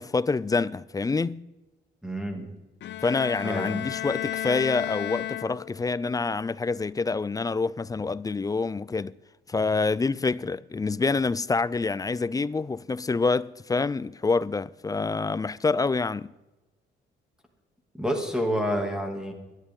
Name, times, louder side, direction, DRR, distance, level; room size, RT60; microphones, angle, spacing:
voice 1, 0.0-1.4 3.0-9.1 9.5-16.3, left 4 dB, 20° left, 0.4 m, -27 dB
voice 2, 2.0-2.5 3.4-3.8 18.0-19.3, equal, 5° right, 2.4 m, -28 dB
Bowed string instrument, 2.8-6.0, left 12 dB, 65° left, 0.7 m, -33 dB
23.5 x 11.0 x 3.7 m
cardioid pair, 90°, 20 cm